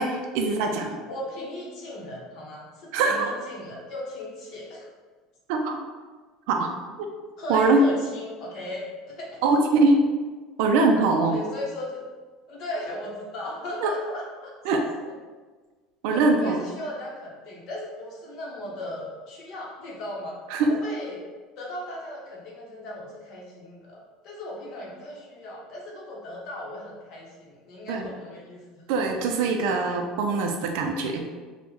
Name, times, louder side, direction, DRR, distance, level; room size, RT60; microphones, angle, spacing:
voice 1, 0.0-1.0 2.9-3.2 5.5-5.8 6.5-6.7 7.0-7.1 7.5-7.8 9.4-10.0 10.6-11.4 13.8-13.9 14.7-14.8 16.0-16.6 20.5-20.7 27.9-28.1 28.9-31.2, right 3 dB, 60° right, 3 dB, 0.3 m, -22 dB
voice 2, 1.1-4.9 7.4-9.4 11.3-12.1 12.5-14.8 16.1-20.3 20.6-21.2 21.6-28.8, left 1 dB, 40° left, -4 dB, 0.7 m, -37 dB
3.5 x 2.0 x 3.0 m, 1.4 s
cardioid pair, 175°, 0 cm